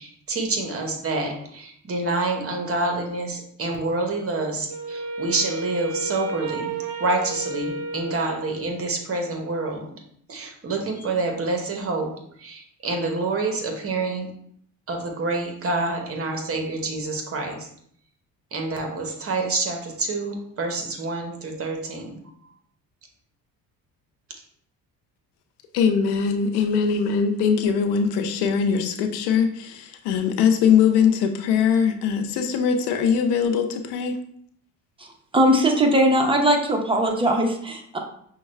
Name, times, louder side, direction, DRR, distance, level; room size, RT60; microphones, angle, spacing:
voice 1, 0.0-9.9 10.3-12.1 12.4-14.3 14.9-17.7 18.5-22.2, right 3 dB, 35° right, 3 dB, 1.0 m, -27 dB
Wind instrument woodwind instrument, 4.7-9.1, right 3 dB, 65° right, 0.7 m, -32 dB
voice 2, 25.7-34.2, left 6 dB, 90° left, 6 dB, 0.6 m, -21 dB
voice 3, 35.3-38.0, right 1 dB, 15° right, 2 dB, 0.7 m, -20 dB
5.5 x 2.2 x 3.1 m, 0.66 s
cardioid pair, 95°, 38 cm